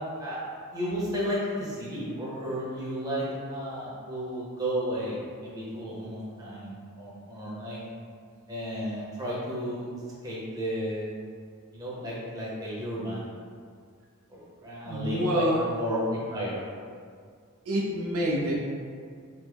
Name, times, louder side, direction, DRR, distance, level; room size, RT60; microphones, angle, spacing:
voice 1, 0.2-3.2 3.5-7.8 8.5-9.9 10.2-11.1 11.7-13.3 14.3-15.4 15.8-16.6, equal, 15° right, -7 dB, 0.7 m, -33 dB
voice 2, 14.8-15.7 17.7-18.7, equal, 75° right, -3 dB, 0.5 m, -27 dB
3.3 x 2.0 x 3.4 m, 2.1 s
head